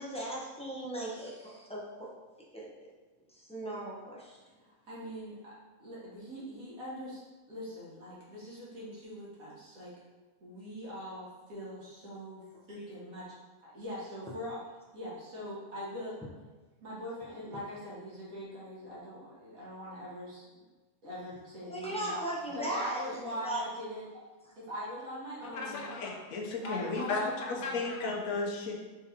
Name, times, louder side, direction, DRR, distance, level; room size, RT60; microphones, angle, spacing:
voice 1, 0.0-2.1 2.5-2.7 3.3-4.4 21.7-23.1 23.4-23.6, right 1 dB, 5° left, -5 dB, 0.4 m, -37 dB
voice 2, 4.6-5.5 5.8-7.2 7.5-9.9 10.4-13.4 13.6-14.6 14.9-16.2 16.8-20.6 21.0-22.2 22.5-24.1 24.6-25.9 26.5-27.9, equal, 70° right, -7 dB, 1.9 m, -42 dB
voice 3, 25.4-28.7, left 3 dB, 70° left, 0 dB, 1.1 m, -34 dB
4.3 x 3.7 x 2.8 m, 1.2 s
omnidirectional pair, 1.5 m